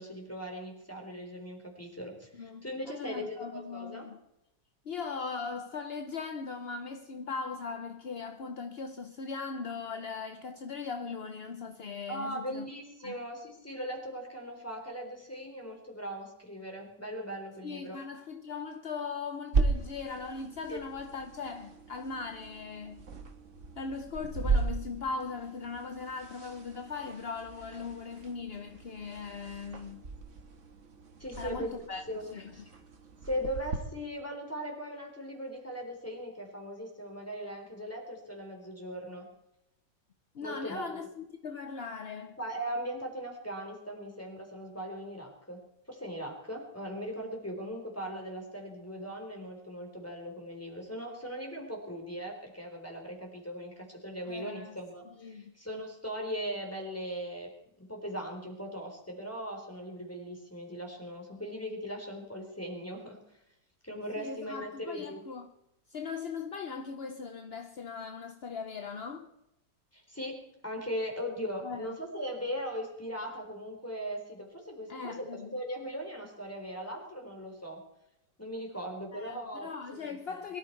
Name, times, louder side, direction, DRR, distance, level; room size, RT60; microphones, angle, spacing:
voice 1, 0.0-4.1 12.1-18.0 20.7-20.8 31.2-31.7 32.1-32.3 32.5-32.8 33.2-39.3 40.4-41.1 42.4-45.6 45.9-57.5 57.8-63.2 63.8-65.2 69.9-77.8 78.4-80.4, equal, 5° left, 3.7 m, -39 dB
voice 2, 2.3-4.2 4.8-12.7 13.0-13.2 17.6-23.1 23.8-30.1 31.4-32.0 32.3-32.5 40.3-42.4 54.3-54.8 55.2-55.5 64.2-65.5 65.9-69.3 71.6-71.9 74.9-75.6 79.1-80.6, left 5 dB, 50° left, 0.8 m, -39 dB
sound 1, 19.5-33.8, right 4 dB, 45° right, 1.7 m, -36 dB
22.5 x 13.5 x 4.6 m
omnidirectional pair, 1.9 m